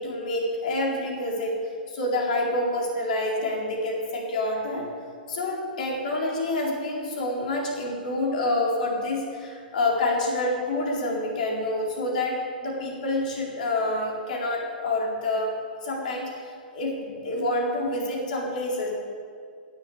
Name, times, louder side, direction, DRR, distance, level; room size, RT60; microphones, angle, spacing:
voice 1, 0.0-1.6 1.9-4.9 5.3-15.5 15.8-16.3 16.7-18.9, left 2 dB, 55° left, -2 dB, 4.1 m, -27 dB
16.5 x 7.3 x 8.7 m, 2.1 s
figure-of-eight pair, 110°, 5 cm